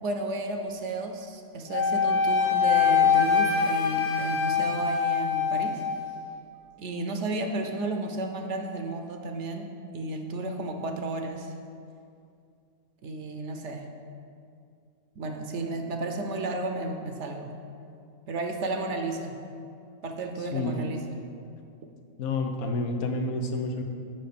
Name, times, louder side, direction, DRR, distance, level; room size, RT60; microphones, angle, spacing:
voice 1, 0.0-5.8 6.8-11.5 13.0-13.9 15.2-17.5 18.3-19.4 20.0-21.1, right 2 dB, 60° right, 4 dB, 0.9 m, -33 dB
Wind instrument woodwind instrument, 1.7-6.0, left 6 dB, 55° left, 1.1 m, -24 dB
voice 2, 20.5-20.8 22.2-23.8, left 2 dB, 85° left, 4 dB, 1.3 m, -29 dB
7.5 x 5.2 x 6.9 m, 2.4 s
omnidirectional pair, 1.5 m